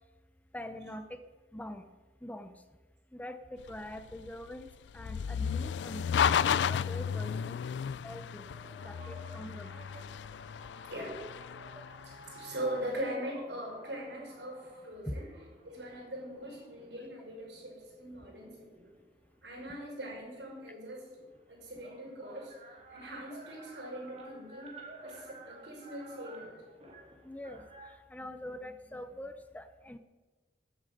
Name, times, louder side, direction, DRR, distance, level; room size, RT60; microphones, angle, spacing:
voice 1, 0.5-1.2 1.5-1.9 2.2-2.5 3.1-4.7 4.9-7.6 8.0-8.5 8.8-9.8 15.1-15.2 27.2-27.6 28.1-30.0, left 1 dB, 10° left, 9 dB, 0.7 m, -44 dB
sound 1, 3.6-12.9, left 7 dB, 80° left, 0.3 m, -33 dB
sound 2, 8.4-17.3 17.9-19.6 20.8-20.9 21.1-27.9, right 2 dB, 40° right, 3.5 m, -52 dB
voice 2, 12.0-15.3 15.6-18.9 19.4-21.2 21.5-22.5 22.9-26.6, right 1 dB, 85° right, -2 dB, 6.1 m, -41 dB
13.5 x 8.7 x 7.7 m, 1.2 s
head